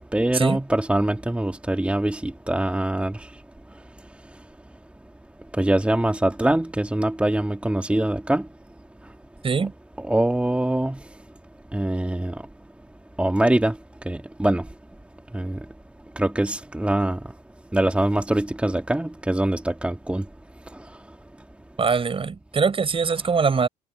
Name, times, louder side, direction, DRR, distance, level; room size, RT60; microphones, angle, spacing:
voice 1, 0.1-3.3 5.5-8.5 10.0-11.0 11.7-12.4 13.2-13.8 14.1-14.7 15.3-15.7 16.2-17.2 17.7-20.3 20.7-20.9, right 1 dB, 5° right, 2.2 m, -23 dB
voice 2, 21.8-23.7, right 5 dB, 30° right, 4.8 m, -22 dB
hypercardioid pair, 75°, 19 cm